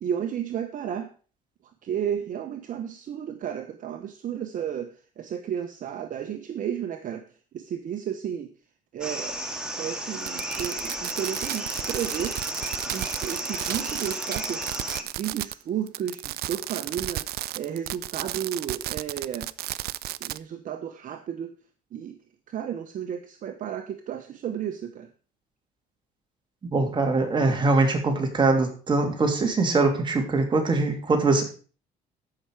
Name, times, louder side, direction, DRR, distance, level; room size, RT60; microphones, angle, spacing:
voice 1, 0.0-1.1 1.6-8.5 8.9-9.4 9.8-12.4 12.8-14.7 15.2-19.5 20.2-21.6 21.9-25.1, right 9 dB, 50° right, 7 dB, 1.0 m, -33 dB
sound 1, 9.0-15.0, right 1 dB, 5° right, 2.1 m, -33 dB
Fireworks, 10.2-15.6 15.9-20.4, right 16 dB, 65° right, 0.4 m, -33 dB
voice 2, 26.7-31.4, right 3 dB, 30° right, 3 dB, 2.9 m, -22 dB
14.0 x 5.9 x 4.8 m, 0.38 s
cardioid pair, 110°, 17 cm